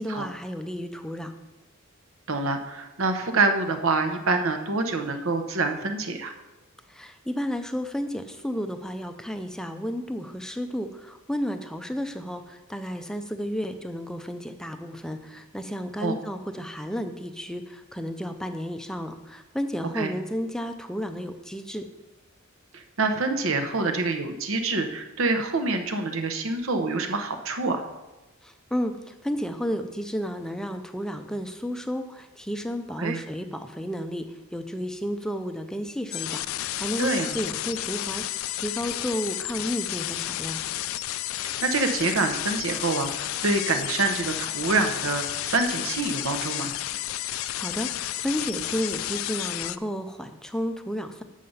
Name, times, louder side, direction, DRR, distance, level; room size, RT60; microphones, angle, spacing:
voice 1, 0.0-1.3 6.9-21.9 28.4-40.6 47.6-51.2, equal, 5° left, 7 dB, 0.5 m, -32 dB
voice 2, 2.3-6.3 16.0-16.1 20.0-20.1 22.7-27.8 33.0-33.2 37.0-37.3 41.6-46.8, right 3 dB, 65° right, 6 dB, 1.0 m, -26 dB
sound 1, 36.1-49.8, left 14 dB, 65° left, 0.3 m, -32 dB
7.5 x 6.5 x 5.5 m, 1.1 s
head